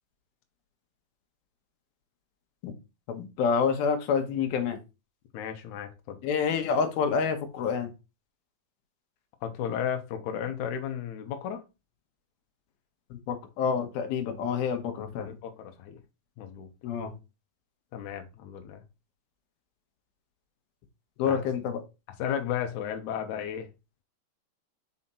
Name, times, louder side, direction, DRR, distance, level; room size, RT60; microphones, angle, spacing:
voice 1, 3.1-4.8 6.2-7.9 13.3-15.3 16.8-17.1 21.2-21.8, left 6 dB, 90° left, 2.9 m, -28 dB
voice 2, 5.3-6.2 9.4-11.6 15.2-16.0 16.4-16.7 17.9-18.8 21.3-21.4 22.2-23.7, left 9 dB, 65° left, 2.1 m, -34 dB
5.7 x 5.0 x 4.2 m
omnidirectional pair, 4.2 m